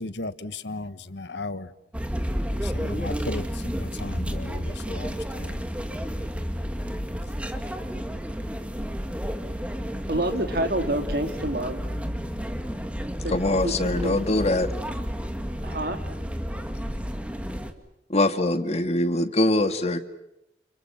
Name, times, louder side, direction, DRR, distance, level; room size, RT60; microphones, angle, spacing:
voice 1, 0.0-1.7 2.6-5.6, left 2 dB, 80° left, 1.3 m, -36 dB
sound 1, 1.9-17.7, equal, 5° right, 2.2 m, -31 dB
voice 2, 10.1-11.8 13.2-13.3 13.6-14.2 15.6-16.0, right 1 dB, 60° right, 3.5 m, -28 dB
voice 3, 13.3-14.7 18.1-20.0, left 2 dB, 40° left, 2.0 m, -23 dB
30.0 x 30.0 x 5.9 m
head